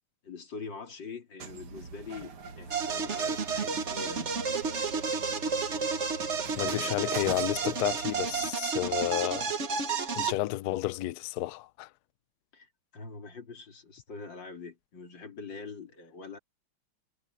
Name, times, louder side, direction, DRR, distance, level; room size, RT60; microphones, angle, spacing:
voice 1, 0.2-4.4 6.6-7.1 8.8-8.9 12.5-16.4, left 4 dB, 60° left, 3.7 m, -44 dB
sound 1, 1.4-8.5, right 6 dB, 85° right, 2.6 m, -44 dB
sound 2, 2.7-10.3, right 5 dB, 40° right, 1.3 m, -31 dB
voice 2, 6.6-9.6 10.1-11.9, left 16 dB, 90° left, 0.8 m, -31 dB
omnidirectional pair, 2.3 m